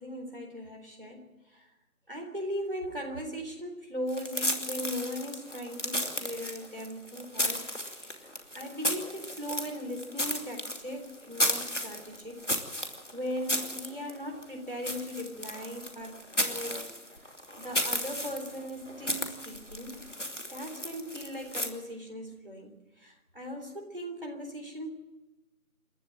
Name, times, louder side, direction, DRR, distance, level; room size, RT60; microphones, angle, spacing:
voice 1, 0.0-1.7 2.1-7.6 7.9-8.3 8.5-12.4 12.8-16.9 17.6-20.0 20.5-24.9, equal, 35° right, 2 dB, 3.7 m, -39 dB
sound 1, 4.1-21.7, left 1 dB, 55° left, 2.6 m, -34 dB
28.0 x 12.5 x 9.0 m, 1.1 s
figure-of-eight pair, 180°, 44 cm